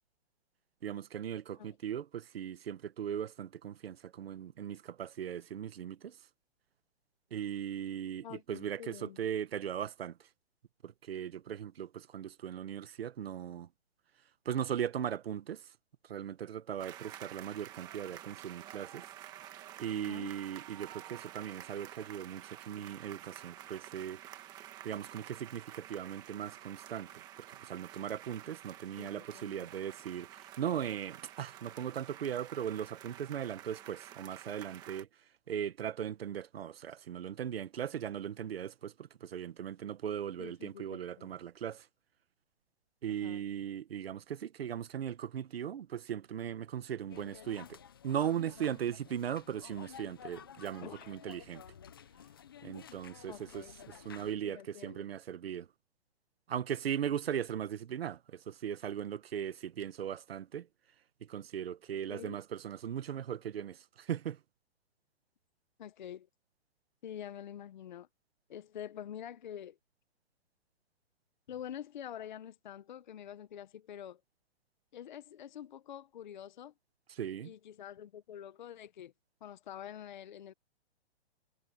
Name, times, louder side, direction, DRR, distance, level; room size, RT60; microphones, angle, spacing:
voice 1, 0.8-6.2 7.3-10.3 10.8-13.7 14.4-15.7 16.0-19.0 19.8-24.2 24.8-27.2 27.5-35.1 35.5-41.9 43.0-47.8 48.0-51.6 52.6-55.7 56.5-60.7 61.2-64.4 77.1-77.5, right 9 dB, 65° right, 1.5 m, -38 dB
voice 2, 8.2-9.2 19.9-20.3 29.0-29.6 40.4-41.3 43.2-43.4 50.8-51.1 53.3-53.9 54.4-55.0 62.1-62.4 65.8-66.3 67.0-68.1 68.5-69.8 71.5-74.2 74.9-76.7 77.4-79.1 79.4-80.5, left 10 dB, 45° left, 0.9 m, -47 dB
sound 1, 16.8-35.0, right 12 dB, 10° right, 1.3 m, -50 dB
sound 2, 47.1-54.3, left 8 dB, 20° left, 0.5 m, -52 dB
hypercardioid pair, 175°, 33 cm